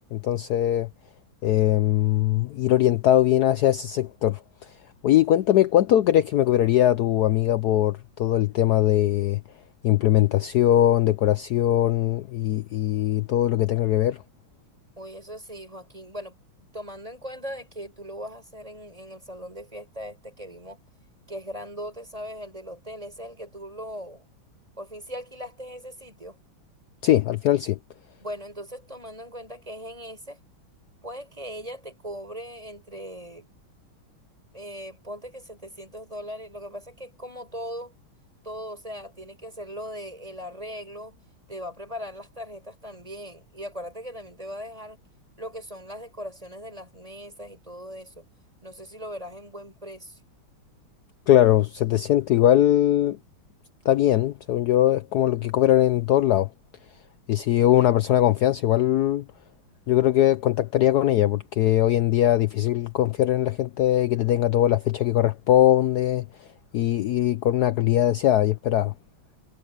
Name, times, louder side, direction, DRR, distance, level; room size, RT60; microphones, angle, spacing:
voice 1, 0.1-0.9 1.4-4.4 5.0-9.4 9.8-14.2 27.0-27.8 51.3-53.2 53.9-56.5 57.3-59.2 59.9-66.2 66.7-68.9, left 13 dB, 75° left, 0.9 m, -21 dB
voice 2, 15.0-20.8 21.3-24.3 24.8-26.4 28.2-30.4 31.0-33.5 34.5-37.9 38.4-41.2 41.5-45.0 45.4-48.2 48.6-50.2, equal, 15° right, 6.1 m, -39 dB
omnidirectional pair, 2.3 m